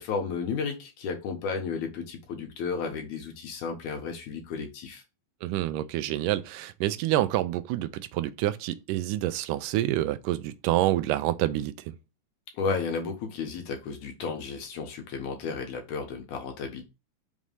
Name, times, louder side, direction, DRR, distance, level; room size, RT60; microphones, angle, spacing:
voice 1, 0.0-5.0 12.6-16.8, left 5 dB, 70° left, 2.6 m, -33 dB
voice 2, 5.4-11.9, right 14 dB, 80° right, 2.0 m, -27 dB
6.1 x 3.2 x 5.3 m
omnidirectional pair, 4.0 m